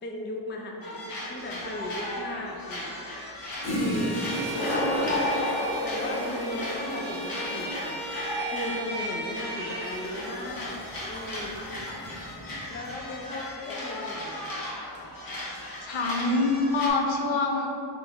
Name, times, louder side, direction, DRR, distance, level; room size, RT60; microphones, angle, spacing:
voice 1, 0.0-3.1 3.7-4.2 5.8-8.0 8.5-11.6 12.7-14.5, left 1 dB, 25° left, 1 dB, 0.4 m, -37 dB
sound 1, 0.8-16.9, left 1 dB, 45° left, 1.0 m, -37 dB
Toilet flush, 1.6-1.7 3.3-3.4 3.6-13.0, left 1 dB, 90° left, 1.3 m, -33 dB
Bowed string instrument, 3.9-10.1, right 1 dB, 25° right, 1.0 m, -36 dB
voice 2, 15.8-17.7, left 3 dB, 70° left, 1 dB, 0.7 m, -26 dB
3.8 x 3.4 x 3.9 m, 2.6 s
wide cardioid pair, 115°, 48 cm